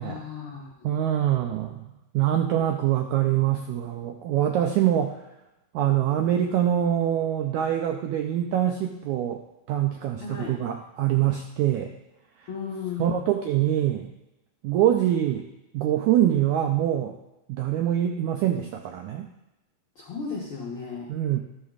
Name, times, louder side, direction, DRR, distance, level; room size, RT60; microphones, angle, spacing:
voice 1, 0.0-1.0 10.2-10.6 12.5-13.3 19.9-21.1, left 6 dB, 65° left, -4 dB, 1.3 m, -35 dB
voice 2, 0.8-1.8 2.1-5.2 5.7-9.4 9.7-11.9 12.4-12.5 13.0-14.1 14.6-15.5 15.7-17.2 17.5-19.3 21.1-21.4, right 11 dB, 85° right, 4 dB, 1.7 m, -24 dB
12.0 x 11.0 x 2.4 m, 0.93 s
omnidirectional pair, 4.0 m